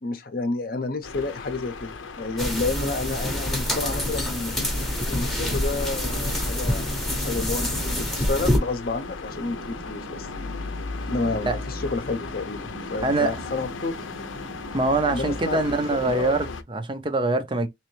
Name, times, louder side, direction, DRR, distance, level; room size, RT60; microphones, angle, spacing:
voice 1, 0.0-4.5 5.1-10.3 11.1-14.0 15.0-15.7 16.0-16.4, left 3 dB, 50° left, 0.7 m, -30 dB
sound 1, 1.0-16.6, left 4 dB, 90° left, 0.6 m, -37 dB
sound 2, 2.4-8.6, left 1 dB, ahead, 0.7 m, -26 dB
sound 3, 9.2-16.3, right 4 dB, 65° right, 0.9 m, -44 dB
voice 2, 14.7-17.7, right 2 dB, 25° right, 0.5 m, -24 dB
3.4 x 3.0 x 3.1 m
head